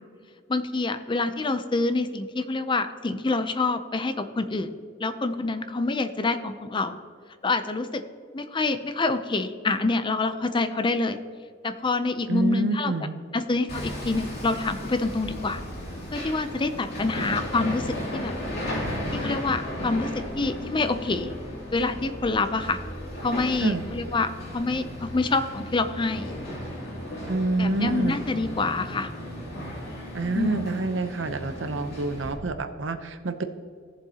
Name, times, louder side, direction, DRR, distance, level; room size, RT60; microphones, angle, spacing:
voice 1, 0.5-4.7 5.0-7.0 7.4-8.0 8.3-11.2 11.6-12.9 13.3-15.6 16.1-18.3 19.1-21.3 21.7-22.8 23.2-26.3 27.6-29.1 30.3-30.8, left 3 dB, 25° left, 10 dB, 0.5 m, -27 dB
voice 2, 12.3-13.2 23.6-23.8 27.3-28.2 30.1-33.4, right 2 dB, 65° right, 9 dB, 0.7 m, -27 dB
Hammer, 13.7-32.3, equal, 55° left, 2.7 m, -35 dB
16.5 x 7.3 x 2.9 m, 2.2 s
head